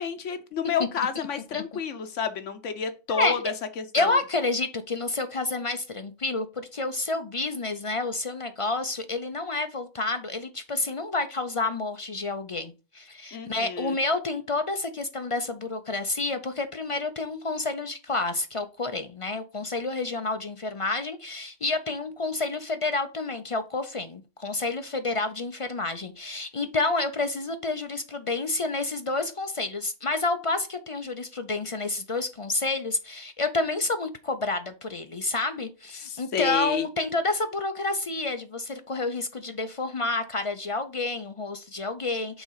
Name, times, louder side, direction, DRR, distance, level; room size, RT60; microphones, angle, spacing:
voice 1, 0.0-4.2 13.3-14.0 36.0-36.9, left 6 dB, 85° left, 8 dB, 1.2 m, -30 dB
voice 2, 3.9-42.4, left 3 dB, 45° left, 8 dB, 0.4 m, -29 dB
6.1 x 3.7 x 5.6 m, 0.32 s
omnidirectional pair, 1.2 m